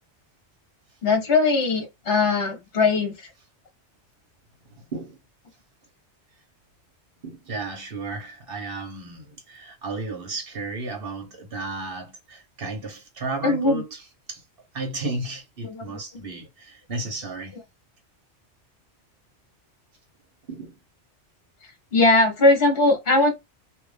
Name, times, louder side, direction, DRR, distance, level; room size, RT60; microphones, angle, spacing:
voice 1, 1.0-3.3 13.4-13.8 15.6-15.8 21.6-23.3, left 3 dB, 55° left, 1.4 m, -20 dB
voice 2, 4.6-5.2 7.2-14.0 14.3-14.4 14.7-17.6 20.5-20.8, right 3 dB, 55° right, 1.3 m, -33 dB
2.9 x 2.6 x 3.3 m
omnidirectional pair, 1.2 m